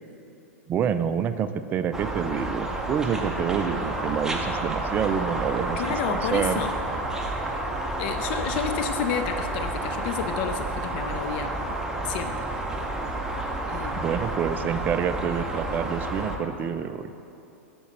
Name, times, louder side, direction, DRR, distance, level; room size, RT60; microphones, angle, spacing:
voice 1, 0.7-5.8 6.1-6.6 14.0-17.1, right 8 dB, 25° right, 11 dB, 0.4 m, -27 dB
sound 1, 1.9-16.4, right 2 dB, 5° right, 0.8 m, -30 dB
voice 2, 5.8-6.7 8.0-11.6 12.0-12.5 13.7-14.1, left 8 dB, 45° left, 8 dB, 0.4 m, -31 dB
8.4 x 5.2 x 5.6 m, 2.9 s
figure-of-eight pair, 95°, 7 cm